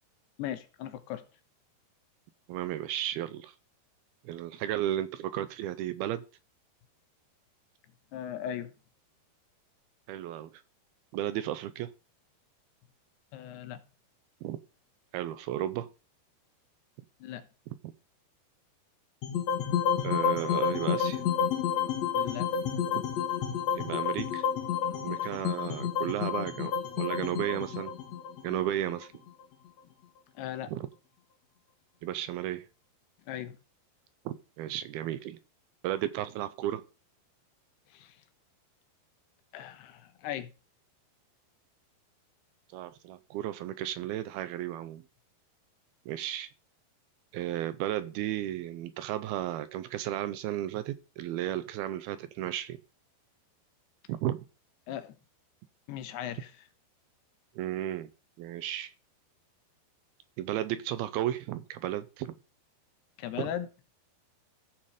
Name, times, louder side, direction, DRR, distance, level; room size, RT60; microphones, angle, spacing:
voice 1, 0.4-1.2 8.1-8.7 13.3-13.8 17.2-17.5 22.1-22.5 30.4-30.7 33.3-33.6 37.9-38.2 39.5-40.5 54.9-55.2 55.9-56.5 63.2-63.7, left 11 dB, 80° left, 2.9 m, -38 dB
voice 2, 2.5-3.5 4.3-6.2 10.1-10.6 11.1-11.9 14.4-14.6 15.1-15.9 20.0-21.2 22.9-23.0 23.8-24.5 25.0-27.9 28.4-29.1 30.7-30.9 32.0-32.7 34.3-35.4 35.8-36.8 42.7-45.0 46.1-46.5 47.3-52.8 54.1-54.4 57.6-58.1 58.4-58.9 60.4-62.4 63.4-63.5, right 12 dB, 80° right, 2.4 m, -34 dB
sound 1, 19.2-29.4, left 7 dB, 60° left, 2.0 m, -30 dB
15.0 x 5.8 x 5.0 m
omnidirectional pair, 4.8 m